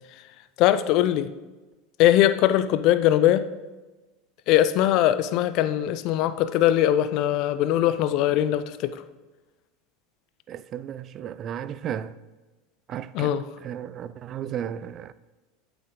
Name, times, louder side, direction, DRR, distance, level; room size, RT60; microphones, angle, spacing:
voice 1, 0.6-1.3 2.0-3.5 4.5-9.0 13.1-13.4, left 12 dB, 55° left, 0.5 m, -21 dB
voice 2, 10.5-12.2 12.9-13.3 13.6-15.1, right 9 dB, 45° right, 0.4 m, -34 dB
8.6 x 7.1 x 3.8 m
hypercardioid pair, 90°, 0 cm